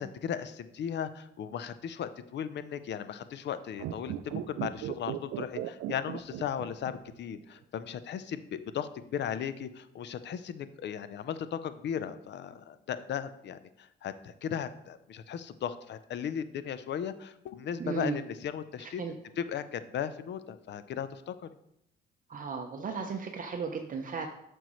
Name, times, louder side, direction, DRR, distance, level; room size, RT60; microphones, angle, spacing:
voice 1, 0.0-21.5, left 8 dB, 60° left, 13 dB, 0.6 m, -37 dB
sound 1, 3.7-7.1 7.4-7.5, right 12 dB, 85° right, 0.4 m, -37 dB
voice 2, 17.8-18.2 18.8-19.1 22.3-24.3, right 5 dB, 45° right, 4 dB, 0.7 m, -35 dB
9.2 x 6.2 x 3.1 m, 0.79 s
cardioid pair, 90°, 20 cm